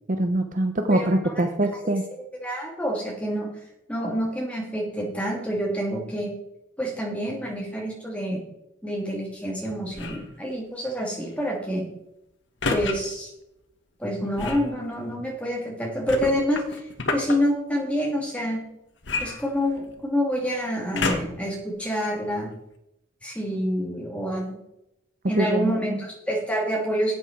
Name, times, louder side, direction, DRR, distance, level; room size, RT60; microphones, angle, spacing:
voice 1, 0.1-2.1 25.4-26.0, right 1 dB, 40° right, 7 dB, 0.8 m, -24 dB
voice 2, 0.9-1.4 1.8-1.9 2.3-3.5 3.9-6.3 6.8-8.4 8.8-11.9 12.7-13.3 14.0-18.6 19.2-22.5 23.2-24.6 25.3-27.1, equal, 5° left, -2 dB, 3.0 m, -27 dB
sound 1, 9.9-10.3 12.6-13.0 14.4-14.7 16.1-17.4 19.0-20.0 20.9-21.5 22.2-22.3, left 3 dB, 60° left, 1.4 m, -29 dB
13.0 x 8.3 x 4.5 m, 0.84 s
head